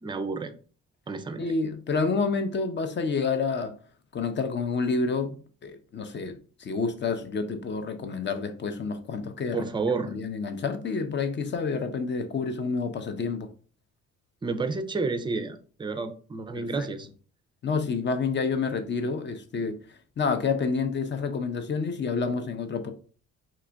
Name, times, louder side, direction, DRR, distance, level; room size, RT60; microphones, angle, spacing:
voice 1, 0.0-0.5 1.1-1.4 9.5-10.1 14.4-17.1, right 4 dB, 15° right, 0.4 m, -30 dB
voice 2, 1.4-3.7 4.1-9.7 10.1-13.5 16.5-16.9 17.6-22.9, left 4 dB, 40° left, 0.5 m, -29 dB
2.9 x 2.5 x 3.3 m
cardioid pair, 90°, 30 cm